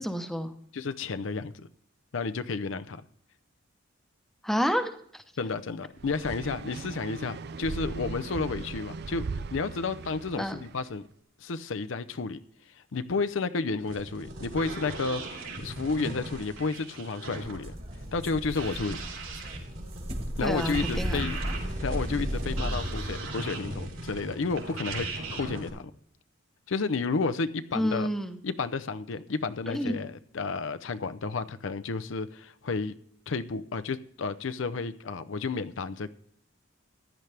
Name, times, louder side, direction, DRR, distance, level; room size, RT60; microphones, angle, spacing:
voice 1, 0.0-0.5 4.4-5.2 10.4-10.6 20.4-21.3 27.7-28.4 29.7-29.9, equal, ahead, 8 dB, 0.9 m, -29 dB
voice 2, 0.7-1.7 2.1-3.1 5.4-11.0 11.4-12.4 12.7-17.7 18.1-19.0 20.4-21.4 21.8-25.9 26.7-28.1 28.4-32.9 33.3-36.1, left 4 dB, 65° left, 12 dB, 0.6 m, -31 dB
sound 1, 6.0-10.9, right 4 dB, 55° right, 0.5 m, -38 dB
sound 2, 13.8-25.7, right 2 dB, 75° right, 3.8 m, -38 dB
sound 3, 17.4-23.3, equal, 30° right, 1.6 m, -35 dB
15.0 x 10.5 x 3.4 m, 0.65 s
head